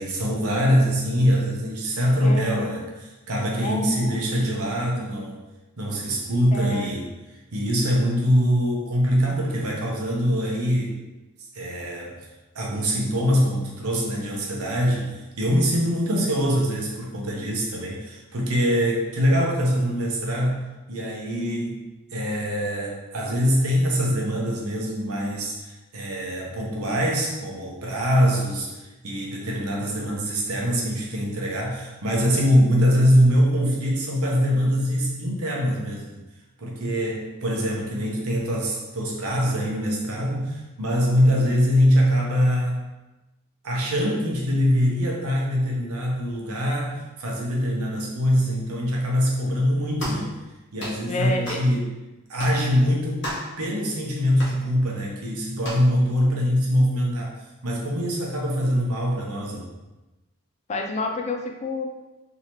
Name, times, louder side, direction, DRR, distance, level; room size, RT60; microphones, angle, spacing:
voice 1, 0.0-5.4 5.8-7.1 7.5-11.0 11.5-12.3 12.5-20.6 20.9-36.2 36.6-42.8 43.6-50.4 50.7-51.9 52.3-53.3 53.6-57.3 57.6-59.7, equal, 85° right, -2 dB, 0.9 m, -23 dB
voice 2, 2.2-2.8 3.6-4.2 6.5-6.9 51.1-51.6 60.7-61.9, left 2 dB, 30° left, 2 dB, 0.3 m, -29 dB
sound 1, 50.0-50.3 50.8-51.0 51.4-51.7 52.4-52.6 53.2-53.5 54.4-54.6 55.6-55.9, equal, 55° left, 1.1 m, -33 dB
3.8 x 2.9 x 3.0 m, 1.1 s
head